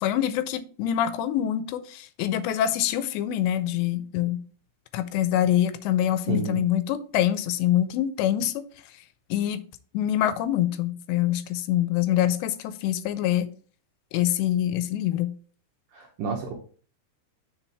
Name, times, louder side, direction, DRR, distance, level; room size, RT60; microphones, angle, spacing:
voice 1, 0.0-4.4 4.9-8.7 9.3-9.6 9.9-13.5 14.1-15.3, left 11 dB, 85° left, 2.8 m, -25 dB
voice 2, 6.3-6.6 15.9-16.5, right 4 dB, 75° right, 2.1 m, -30 dB
8.2 x 6.0 x 3.4 m
omnidirectional pair, 5.1 m